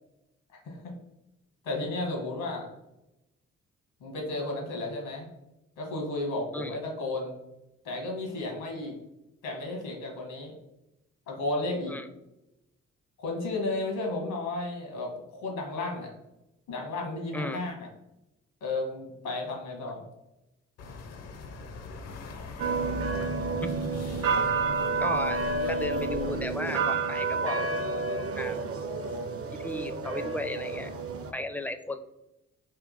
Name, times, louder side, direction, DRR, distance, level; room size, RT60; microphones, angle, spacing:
voice 1, 0.6-1.0 1.6-2.7 4.0-5.3 5.8-7.3 7.8-9.0 9.4-10.5 11.3-12.0 13.2-16.1 16.7-17.7 18.6-20.0, left 2 dB, 85° left, 0 dB, 1.5 m, -33 dB
sound 1, 20.8-26.4, left 3 dB, 55° left, 0.6 m, -42 dB
sound 2, 22.6-31.3, right 4 dB, 50° right, 0.6 m, -30 dB
voice 2, 25.0-27.6 28.1-28.6 29.5-30.9 31.3-32.0, left 1 dB, 5° left, 9 dB, 0.4 m, -35 dB
3.6 x 2.8 x 3.9 m, 0.92 s
supercardioid pair, 55°, 30 cm